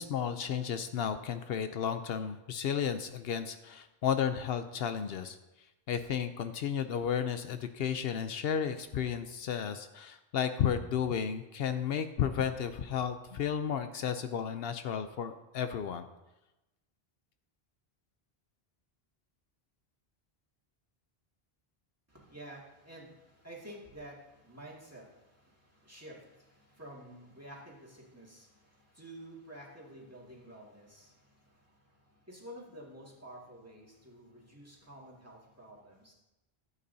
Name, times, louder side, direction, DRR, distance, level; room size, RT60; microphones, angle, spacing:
voice 1, 0.0-5.4 5.9-16.1, left 8 dB, 75° left, 9 dB, 0.8 m, -33 dB
voice 2, 22.1-36.1, right 1 dB, 15° right, -4 dB, 2.0 m, -51 dB
13.5 x 8.4 x 2.7 m, 0.97 s
omnidirectional pair, 1.0 m